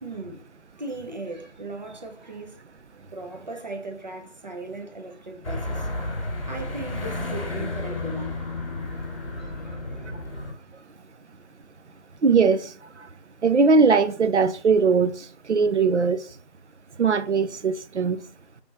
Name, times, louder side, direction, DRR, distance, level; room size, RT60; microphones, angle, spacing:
voice 1, 0.0-2.6 3.1-6.1 6.5-8.5 9.0-10.0 10.2-10.6 11.0-11.1, right 2 dB, 40° right, 0.7 m, -38 dB
sound 1, 5.4-10.5, left 2 dB, 50° left, 1.2 m, -32 dB
voice 2, 12.2-12.7 13.4-15.1 15.5-16.2 17.0-18.2, right 4 dB, 70° right, 0.5 m, -20 dB
5.0 x 3.4 x 2.9 m
figure-of-eight pair, 160°, 36 cm